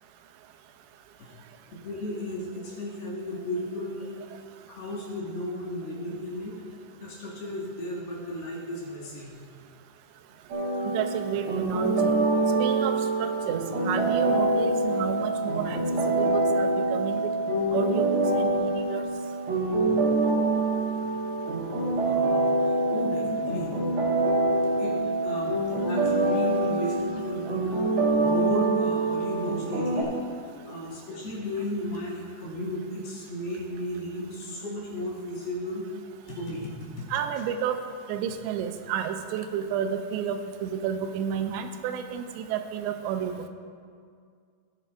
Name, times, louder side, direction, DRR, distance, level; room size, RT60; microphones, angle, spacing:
voice 1, 1.7-4.4 4.7-6.6 7.0-9.4 19.6-19.9 22.0-23.7 24.8-25.0 25.2-25.6 25.8-27.7 28.2-30.1 30.7-35.9 36.2-37.1, left 1 dB, 65° left, -7 dB, 3.9 m, -34 dB
sound 1, 10.5-30.0, right 2 dB, 70° right, 1.2 m, -25 dB
voice 2, 10.8-12.1 12.6-17.3 17.7-19.0 37.1-37.8 38.1-43.4, right 8 dB, 85° right, 7 dB, 2.8 m, -31 dB
19.5 x 7.9 x 2.5 m, 2.2 s
omnidirectional pair, 5.0 m